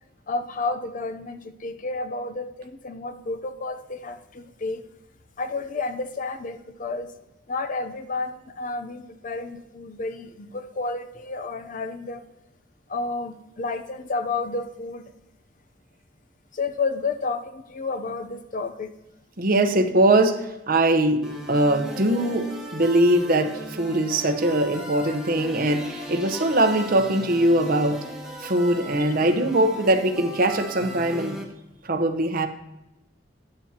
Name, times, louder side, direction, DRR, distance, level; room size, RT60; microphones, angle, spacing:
voice 1, 0.3-4.8 5.4-7.1 7.5-12.2 12.9-15.0 16.5-18.9, left 3 dB, 45° left, 9 dB, 0.7 m, -31 dB
voice 2, 19.4-28.1 28.4-31.4 31.8-32.5, right 1 dB, 50° right, 6 dB, 1.0 m, -21 dB
sound 1, 21.2-31.4, right 1 dB, 5° right, 1.6 m, -37 dB
13.5 x 9.9 x 2.9 m, 0.94 s
head